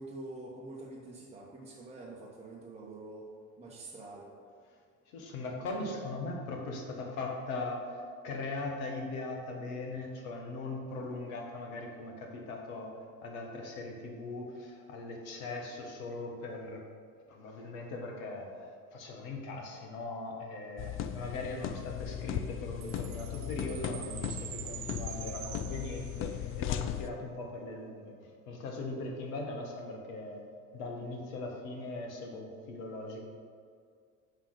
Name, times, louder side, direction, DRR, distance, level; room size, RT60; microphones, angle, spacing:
voice 1, 0.0-3.3 3.6-4.3, right 2 dB, 15° right, -3 dB, 1.1 m, -46 dB
voice 2, 5.1-13.0 13.2-16.8 17.3-18.7 18.9-30.4 30.7-33.2, left 2 dB, 65° left, 1 dB, 1.6 m, -40 dB
sound 1, 20.8-27.1, left 10 dB, 30° left, 0.4 m, -37 dB
Chime, 22.8-26.5, right 11 dB, 55° right, 0.7 m, -45 dB
6.7 x 5.6 x 5.0 m, 2.1 s
hypercardioid pair, 75°, 44 cm